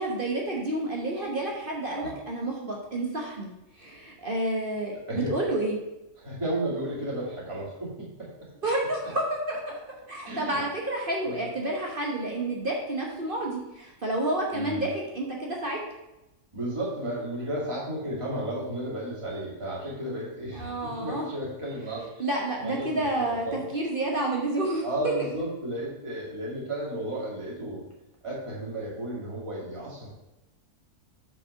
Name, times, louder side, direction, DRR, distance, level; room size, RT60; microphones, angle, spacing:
voice 1, 0.0-5.8 8.6-15.8 20.5-21.3 22.2-25.1, right 1 dB, 40° right, -1 dB, 1.1 m, -30 dB
voice 2, 6.2-8.5 10.2-10.6 11.2-11.4 14.5-14.9 16.5-22.2 22.6-23.7 24.8-27.9 28.2-30.1, right 1 dB, 20° right, -6 dB, 2.4 m, -33 dB
5.8 x 5.0 x 5.7 m, 0.94 s
omnidirectional pair, 1.6 m